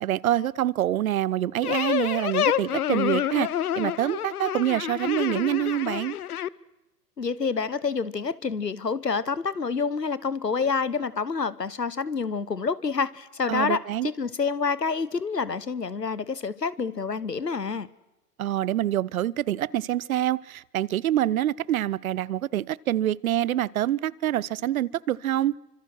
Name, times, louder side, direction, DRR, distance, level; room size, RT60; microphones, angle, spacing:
voice 1, 0.0-6.2 13.5-14.1 18.4-25.6, right 12 dB, 60° right, 24 dB, 0.8 m, -26 dB
sound 1, 1.6-6.5, left 11 dB, 65° left, 0.9 m, -28 dB
voice 2, 7.2-17.9, left 5 dB, 85° left, 18 dB, 1.2 m, -28 dB
29.0 x 25.0 x 6.2 m, 0.96 s
figure-of-eight pair, 95°, 48 cm